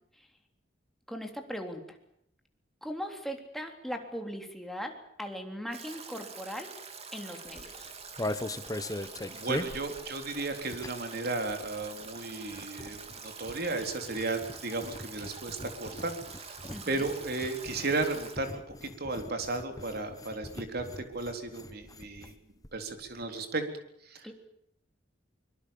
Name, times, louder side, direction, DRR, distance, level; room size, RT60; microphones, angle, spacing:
voice 1, 1.1-2.0 2.8-6.7 7.1-7.9 16.7-17.1 24.2-24.3, equal, ahead, 3 dB, 3.4 m, -39 dB
Stream / Drip / Trickle dribble, 5.7-18.4, right 5 dB, 35° right, 3.0 m, -46 dB
sound 1, 7.5-11.2 11.4-22.4 22.6-22.7 22.9-23.3, left 1 dB, 20° left, 1.3 m, -41 dB
voice 2, 9.3-13.0 13.2-16.6 16.9-22.3 22.7-23.6 24.0-24.3, right 3 dB, 55° right, 6 dB, 3.7 m, -34 dB
24.5 x 23.0 x 7.2 m, 0.74 s
head